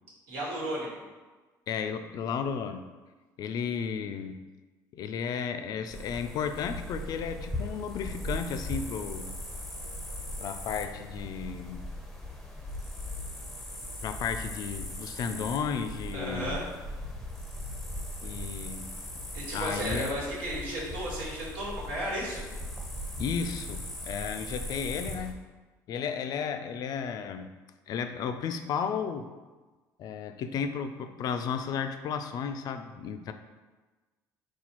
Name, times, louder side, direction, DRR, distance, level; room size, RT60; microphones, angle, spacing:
voice 1, 0.3-0.9 16.1-16.6 19.3-22.4, right 1 dB, 90° right, -4 dB, 1.5 m, -34 dB
voice 2, 1.7-2.9 3.4-4.4 4.9-9.3 10.4-11.9 14.0-16.6 18.2-18.9 19.5-20.1 23.2-25.4 25.9-27.5 27.9-29.3 30.0-33.3, left 6 dB, 60° left, 8 dB, 0.4 m, -33 dB
sound 1, 5.9-25.3, left 1 dB, ahead, 0.7 m, -39 dB
4.1 x 2.3 x 4.4 m, 1.3 s
cardioid pair, 100°, 8 cm